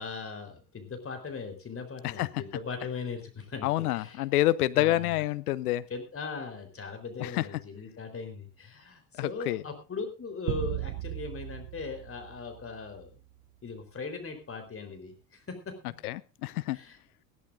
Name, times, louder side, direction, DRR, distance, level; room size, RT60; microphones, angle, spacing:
voice 1, 0.0-4.2 4.7-5.3 5.6-13.1 13.6-15.7 16.7-17.0, left 4 dB, 25° left, 6 dB, 4.0 m, -39 dB
voice 2, 3.6-5.8 7.2-7.5 9.2-9.6 16.0-16.8, left 16 dB, 65° left, 18 dB, 0.9 m, -27 dB
sound 1, 10.5-13.1, right 17 dB, 55° right, 0.8 m, -36 dB
20.0 x 14.0 x 2.6 m, 0.29 s
figure-of-eight pair, 65°, 49 cm